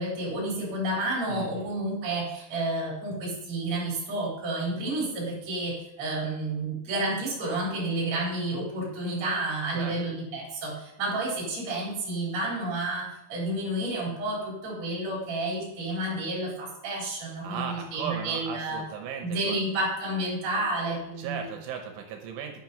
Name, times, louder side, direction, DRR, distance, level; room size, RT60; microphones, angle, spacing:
voice 1, 0.0-18.8 19.2-21.4, right 2 dB, 35° right, -5 dB, 4.6 m, -30 dB
voice 2, 1.3-1.7 9.7-10.0 17.4-19.6 21.2-22.6, right 7 dB, 75° right, 4 dB, 3.4 m, -36 dB
10.0 x 9.4 x 5.4 m, 0.83 s
omnidirectional pair, 6.0 m